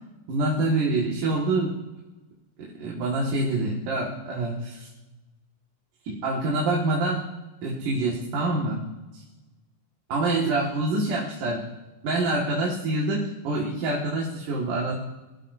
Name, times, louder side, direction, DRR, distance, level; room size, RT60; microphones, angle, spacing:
voice 1, 0.3-1.8 2.8-4.9 6.0-7.3 7.6-8.8 9.1-9.2 10.1-11.7 12.0-14.9, right 2 dB, 70° right, -4 dB, 3.5 m, -26 dB
23.5 x 16.5 x 2.7 m, 1.1 s
omnidirectional pair, 3.9 m